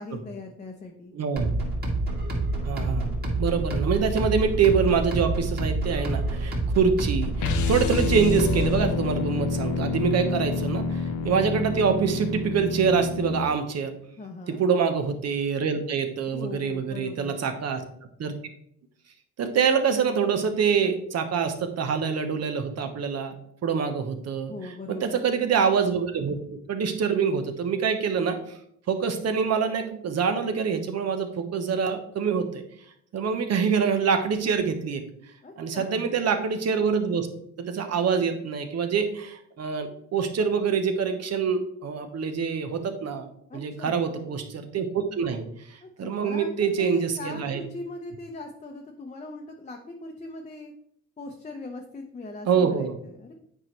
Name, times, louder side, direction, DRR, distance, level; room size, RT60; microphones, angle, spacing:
voice 1, 0.0-1.1 14.2-14.6 16.3-17.4 24.5-25.3 35.4-36.1 43.5-44.1 45.8-50.7 51.2-53.3, left 2 dB, 25° left, 2 dB, 0.8 m, -40 dB
voice 2, 1.1-1.5 2.6-3.1 3.4-13.9 14.5-17.8 18.2-18.3 19.4-23.3 23.6-26.4 26.7-28.4 28.9-32.6 33.1-35.0 35.6-37.3 37.6-45.5 46.0-47.6 52.5-53.0, right 6 dB, 55° right, 7 dB, 1.0 m, -25 dB
sound 1, 1.4-8.9, right 2 dB, 30° right, 2.3 m, -28 dB
sound 2, 7.4-13.5, left 4 dB, 75° left, 0.7 m, -28 dB
8.6 x 4.6 x 3.2 m, 0.70 s
cardioid pair, 90°, 30 cm